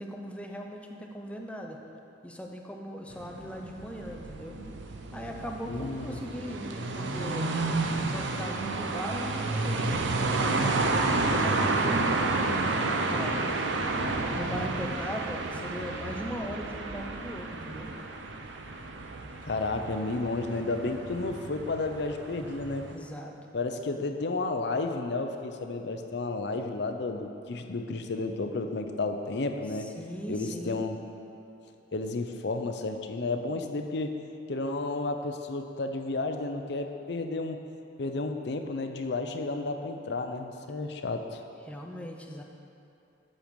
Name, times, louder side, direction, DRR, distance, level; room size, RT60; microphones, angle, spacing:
voice 1, 0.0-1.8 2.2-4.6 5.1-7.5 8.0-13.7 14.3-17.9 22.9-23.4 29.8-30.8 41.7-42.4, equal, 5° left, 1 dB, 0.5 m, -39 dB
sound 1, 3.1-22.9, right 3 dB, 75° right, 0.6 m, -31 dB
voice 2, 5.7-6.2 19.4-22.9 23.5-29.9 30.3-31.0 31.9-34.2 34.5-37.7 38.0-41.4, left 3 dB, 60° left, 6 dB, 0.6 m, -32 dB
7.6 x 6.5 x 5.3 m, 2.7 s
head